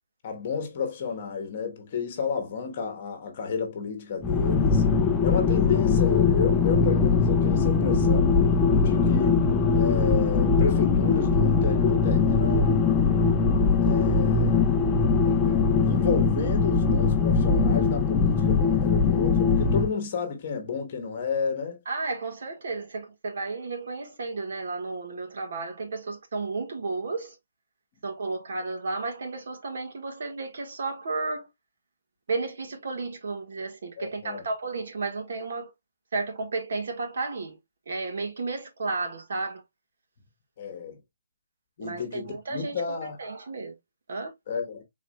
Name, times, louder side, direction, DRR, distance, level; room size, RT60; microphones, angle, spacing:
voice 1, 0.2-4.9 5.2-8.3 8.8-13.0 13.8-14.5 15.3-21.8 34.0-34.4 40.6-41.0 41.8-43.2 44.5-44.8, left 6 dB, 30° left, 1.2 m, -31 dB
sound 1, 4.2-19.9, left 4 dB, 10° left, 0.4 m, -21 dB
voice 2, 21.9-27.3 28.0-31.5 32.3-35.7 36.1-37.6 37.9-39.6 41.8-42.8 43.2-43.7 44.1-44.3, right 3 dB, 55° right, 1.5 m, -33 dB
4.6 x 4.0 x 2.3 m
hypercardioid pair, 175°, 0 cm